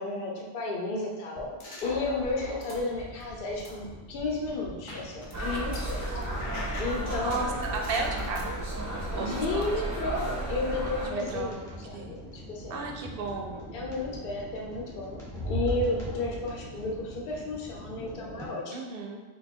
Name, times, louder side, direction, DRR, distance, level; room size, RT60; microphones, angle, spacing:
voice 1, 0.0-6.1 6.8-7.5 9.2-12.8 13.7-15.2 15.5-18.9, left 2 dB, 65° left, -1 dB, 0.8 m, -33 dB
sound 1, 1.4-2.8 3.2-5.9 6.2-8.5, left 1 dB, 35° left, 0.6 m, -41 dB
sound 2, 2.9-18.5, equal, 5° left, 0.9 m, -41 dB
sound 3, 5.3-11.1, right 1 dB, 30° right, 0.3 m, -33 dB
voice 2, 7.2-8.7 9.2-9.7 11.0-11.6 11.9-12.1 12.7-13.7 18.7-19.2, right 3 dB, 65° right, 2 dB, 0.7 m, -34 dB
3.1 x 2.2 x 4.2 m, 1.2 s
omnidirectional pair, 1.1 m